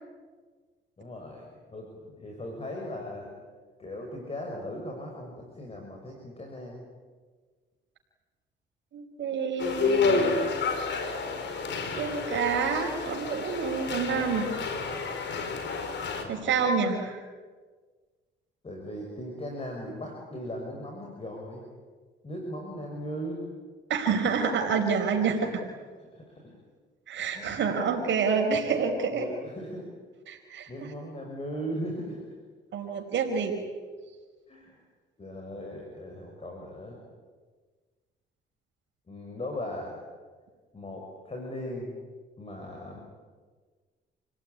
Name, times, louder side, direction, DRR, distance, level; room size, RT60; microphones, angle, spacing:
voice 1, 1.0-3.3 3.8-6.8 16.2-16.6 18.6-21.6 22.2-23.4 26.1-26.6 27.3-27.9 29.1-29.9 30.7-32.2 34.5-34.8 35.2-37.0 39.1-40.0 40.7-42.0 42.4-43.0, equal, 30° left, 1 dB, 6.3 m, -38 dB
voice 2, 8.9-10.5 11.9-14.5 16.3-17.2 23.9-25.6 27.1-29.3 30.3-30.7 32.7-33.5, right 5 dB, 70° right, 2 dB, 5.0 m, -28 dB
sound 1, 9.6-16.2, left 4 dB, 65° left, 4.6 m, -29 dB
29.5 x 18.5 x 9.9 m, 1.4 s
cardioid pair, 90°, 20 cm